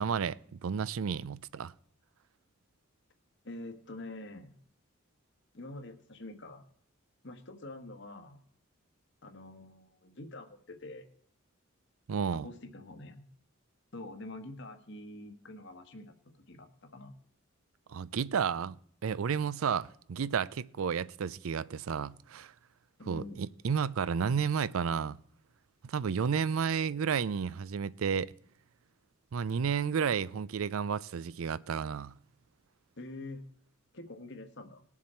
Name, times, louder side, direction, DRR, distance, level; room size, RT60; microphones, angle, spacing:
voice 1, 0.0-1.7 12.1-12.5 17.9-18.8 19.0-22.5 23.1-25.2 25.8-28.3 29.3-32.1, right 6 dB, 80° right, 0.4 m, -32 dB
voice 2, 3.4-4.6 5.5-6.6 7.2-8.4 9.2-11.1 12.3-13.2 13.9-16.1 16.5-17.1 23.0-23.4 33.0-33.4 33.9-34.8, left 2 dB, 55° left, 1.3 m, -46 dB
19.5 x 7.2 x 4.4 m
head